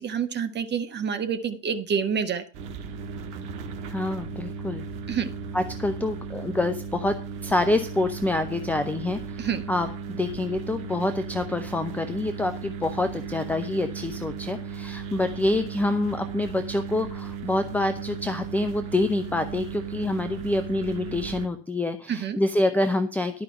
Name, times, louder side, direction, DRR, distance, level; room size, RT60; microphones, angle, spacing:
voice 1, 0.0-2.4 5.1-5.3 9.4-9.6 22.1-22.4, right 7 dB, 25° right, 8 dB, 1.4 m, -27 dB
sound 1, 2.5-21.5, right 6 dB, 55° right, 1.6 m, -36 dB
voice 2, 3.9-4.8 5.5-7.2 7.4-23.4, left 2 dB, 5° left, 8 dB, 0.6 m, -27 dB
11.5 x 5.2 x 7.3 m, 0.39 s
figure-of-eight pair, 70°, 42 cm